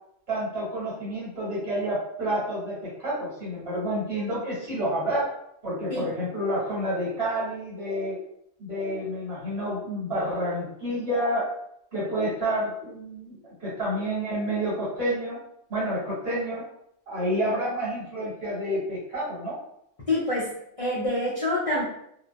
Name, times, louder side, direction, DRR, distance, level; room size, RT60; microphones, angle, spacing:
voice 1, 0.3-5.3 5.6-8.2 8.6-11.5 11.9-15.4 15.7-16.6 17.1-19.6, equal, 60° right, -8 dB, 1.5 m, -29 dB
voice 2, 20.1-20.5 20.8-21.8, left 1 dB, 40° left, -7 dB, 0.5 m, -26 dB
2.5 x 2.1 x 2.3 m, 0.74 s
omnidirectional pair, 1.2 m